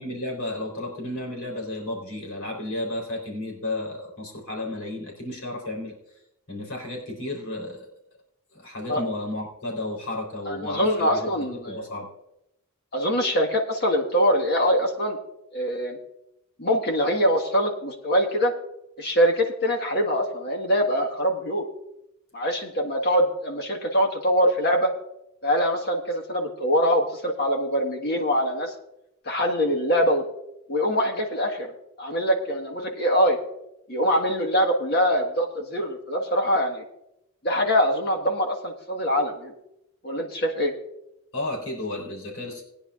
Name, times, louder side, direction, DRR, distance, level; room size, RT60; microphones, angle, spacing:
voice 1, 0.0-5.9 6.5-7.9 8.5-12.1 41.3-42.6, left 1 dB, 70° left, -1 dB, 3.7 m, -33 dB
voice 2, 10.5-11.8 12.9-15.2 15.5-16.0 16.6-18.5 19.0-21.7 22.3-24.9 25.4-28.7 29.2-30.2 30.7-31.7 32.0-33.4 33.9-36.8 37.4-39.5 40.0-40.7, equal, 45° left, 1 dB, 1.6 m, -23 dB
20.0 x 10.0 x 2.5 m, 0.82 s
head